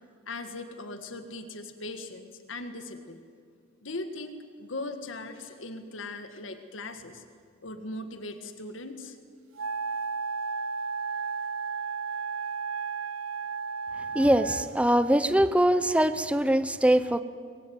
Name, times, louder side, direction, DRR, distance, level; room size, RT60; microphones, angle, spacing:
voice 1, 0.3-3.2 3.8-7.2 7.6-9.2, left 2 dB, 70° left, 7 dB, 1.8 m, -39 dB
Wind instrument woodwind instrument, 9.6-14.8, right 5 dB, 80° right, 0.6 m, -33 dB
voice 2, 14.1-17.2, right 1 dB, 5° right, 12 dB, 0.7 m, -22 dB
24.0 x 22.0 x 9.5 m, 2.1 s
head